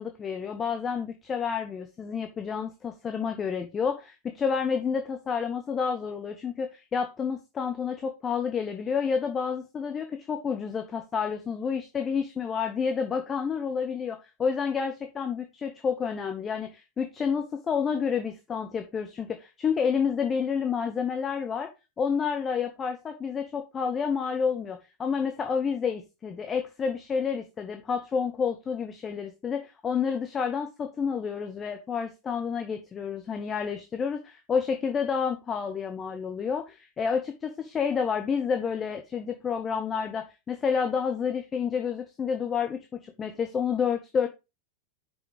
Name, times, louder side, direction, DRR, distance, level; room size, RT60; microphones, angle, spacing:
voice 1, 0.0-21.7 22.0-44.3, left 6 dB, 20° left, 5 dB, 1.1 m, -29 dB
6.1 x 5.5 x 5.3 m, 0.26 s
figure-of-eight pair, 90°, 0 cm